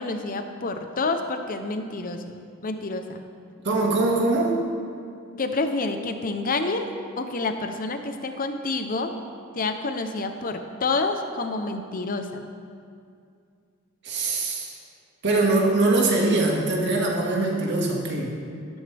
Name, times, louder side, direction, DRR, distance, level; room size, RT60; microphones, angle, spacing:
voice 1, 0.0-3.2 5.4-6.9 7.2-9.1 9.5-12.4, left 3 dB, 45° left, 7 dB, 0.8 m, -28 dB
voice 2, 3.6-4.6 14.0-14.8 15.2-18.3, right 2 dB, 60° right, -1 dB, 2.0 m, -22 dB
13.0 x 12.5 x 3.5 m, 2.3 s
head